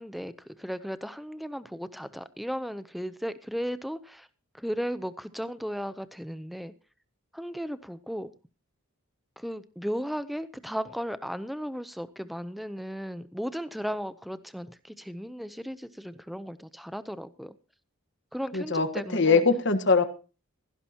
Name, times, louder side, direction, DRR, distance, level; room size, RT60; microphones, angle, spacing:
voice 1, 0.0-4.3 4.5-6.7 7.3-8.3 9.4-17.5 18.3-19.5, equal, ahead, 0.6 m, -35 dB
voice 2, 18.5-18.9 19.1-20.0, left 4 dB, 55° left, 1.4 m, -22 dB
17.0 x 15.5 x 2.9 m
head